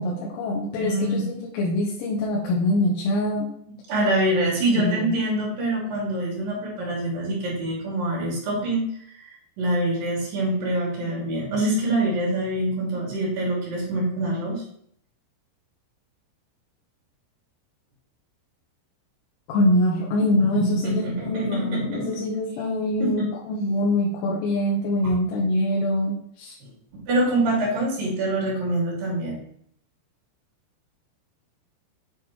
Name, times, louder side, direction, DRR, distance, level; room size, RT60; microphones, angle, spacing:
voice 1, 0.0-3.5 4.7-5.1 19.5-26.6, left 1 dB, 90° left, -4 dB, 4.0 m, -24 dB
voice 2, 0.8-1.3 3.9-9.3 9.6-14.6 20.5-22.1 23.0-23.3 25.0-25.1 26.6-26.7 27.1-29.4, right 1 dB, 50° right, -4 dB, 3.9 m, -25 dB
9.3 x 4.1 x 4.4 m, 0.66 s
omnidirectional pair, 5.9 m